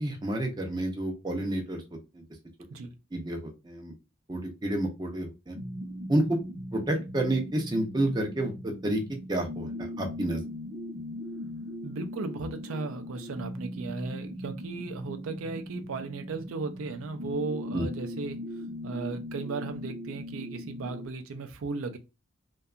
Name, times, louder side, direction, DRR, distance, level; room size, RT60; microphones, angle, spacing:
voice 1, 0.0-1.8 2.1-2.2 3.1-3.9 4.3-5.6 6.1-6.4 6.7-9.0 9.3-10.4 17.7-17.9, right 1 dB, 20° right, 0.5 m, -29 dB
sound 1, 5.5-21.1, left 1 dB, 35° right, 0.9 m, -39 dB
voice 2, 11.8-18.4 18.8-22.0, right 3 dB, 85° right, 0.4 m, -36 dB
2.7 x 2.2 x 2.3 m
head